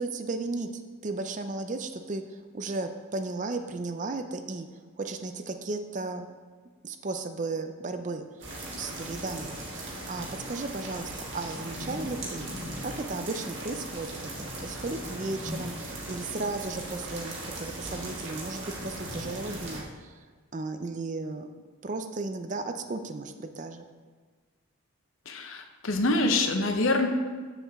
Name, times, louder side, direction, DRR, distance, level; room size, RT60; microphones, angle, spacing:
voice 1, 0.0-4.7 5.0-6.3 6.8-8.2 8.8-12.5 12.8-20.1 20.5-21.5 21.8-23.8, right 3 dB, 35° right, 8 dB, 0.4 m, -35 dB
sound 1, 8.4-19.8, right 1 dB, 55° right, 1.7 m, -38 dB
voice 2, 25.3-27.1, left 2 dB, 70° left, 5 dB, 0.8 m, -25 dB
7.5 x 7.0 x 3.6 m, 1.5 s
head